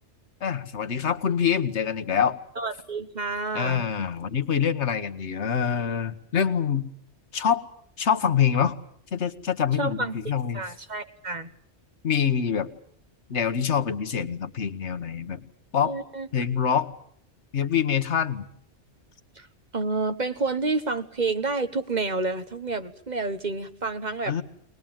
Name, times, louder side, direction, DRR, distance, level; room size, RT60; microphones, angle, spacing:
voice 1, 0.4-2.4 3.5-6.9 7.3-7.6 8.0-8.8 9.1-10.6 12.0-12.7 13.3-15.5 15.7-15.9 16.3-16.9 17.5-18.5 24.3-24.4, left 7 dB, 80° left, 9 dB, 1.5 m, -25 dB
voice 2, 2.6-3.9 9.8-10.2 10.5-11.5 15.8-16.3 19.4-19.5 19.7-24.3, right 3 dB, 40° right, 8 dB, 1.4 m, -29 dB
23.0 x 20.0 x 8.9 m, 0.65 s
omnidirectional pair, 1.2 m